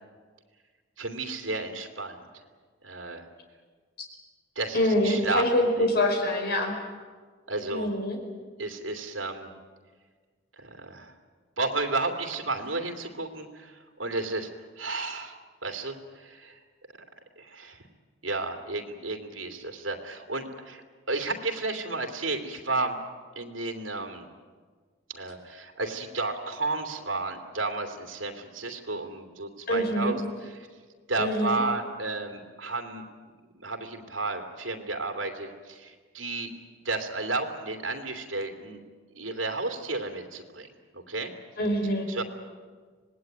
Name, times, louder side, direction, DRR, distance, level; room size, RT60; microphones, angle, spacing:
voice 1, 1.0-2.3 2.8-3.2 4.6-5.9 7.5-7.9 8.6-9.5 10.6-11.1 11.6-14.5 14.8-16.6 17.4-17.8 18.2-23.0 23.4-24.3 25.1-30.7 31.1-33.0 33.5-36.5 36.8-38.8 39.1-40.7 40.9-41.3 42.1-42.2, right 3 dB, 80° right, 6 dB, 2.9 m, -32 dB
voice 2, 4.7-6.7 7.7-8.2 29.7-30.1 31.2-31.6 41.6-42.1, left 1 dB, 55° left, 3 dB, 4.9 m, -25 dB
26.0 x 19.0 x 9.4 m, 1.5 s
head